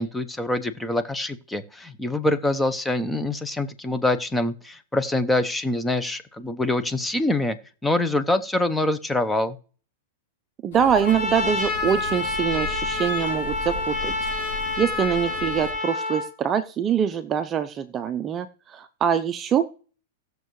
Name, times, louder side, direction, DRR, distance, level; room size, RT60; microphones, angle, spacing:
voice 1, 0.0-7.6 7.8-9.6, left 2 dB, 5° left, 10 dB, 0.9 m, -25 dB
voice 2, 10.6-14.1 14.8-19.7, right 8 dB, 25° right, 10 dB, 0.6 m, -24 dB
sound 1, 10.7-15.7, left 4 dB, 70° left, 3.8 m, -37 dB
Trumpet, 11.0-16.3, left 2 dB, 25° left, 2.4 m, -28 dB
17.5 x 6.6 x 3.1 m, 0.40 s
hypercardioid pair, 135°, 0 cm